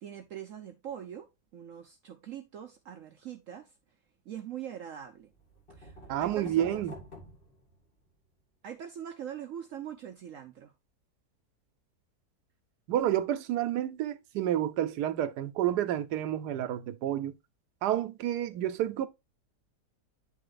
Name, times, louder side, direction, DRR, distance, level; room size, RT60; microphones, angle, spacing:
voice 1, 0.0-3.7 4.3-5.3 5.7-6.9 8.6-10.7, right 9 dB, 60° right, 0.9 m, -43 dB
sound 1, 5.3-8.2, left 1 dB, 35° left, 1.7 m, -49 dB
voice 2, 6.1-7.0 12.9-17.3 17.8-19.1, right 12 dB, 80° right, 1.2 m, -30 dB
9.4 x 3.3 x 3.9 m
omnidirectional pair, 1.7 m